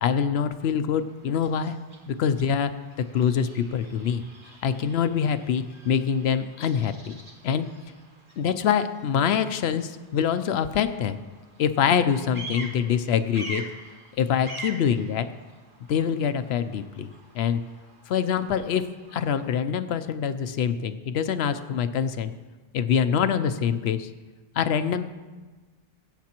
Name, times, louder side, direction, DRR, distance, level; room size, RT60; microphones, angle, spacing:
voice 1, 0.0-1.8 2.1-2.7 3.1-4.2 4.6-7.2 7.4-7.7 8.4-11.2 11.6-13.6 14.2-15.3 15.9-17.1 17.3-17.6 18.1-18.9 19.1-22.3 22.7-24.1 24.5-25.1, left 7 dB, 85° left, 11 dB, 0.8 m, -25 dB
Bird vocalization bird call bird song, 0.8-19.5, right 1 dB, 55° right, 1.9 m, -46 dB
21.0 x 8.2 x 2.9 m, 1.3 s
omnidirectional pair, 1.0 m